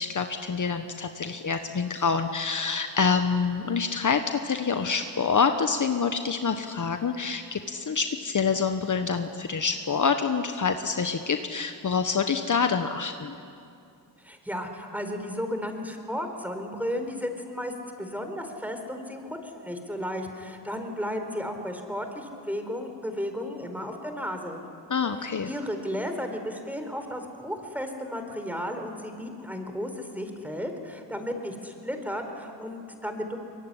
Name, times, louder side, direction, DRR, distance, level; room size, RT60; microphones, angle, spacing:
voice 1, 0.0-13.4 24.9-25.5, left 5 dB, 45° left, 7 dB, 1.3 m, -26 dB
voice 2, 14.2-17.7 18.0-24.6 25.5-33.4, equal, 5° right, 5 dB, 4.4 m, -34 dB
23.5 x 21.5 x 10.0 m, 2.5 s
cardioid pair, 65°, 42 cm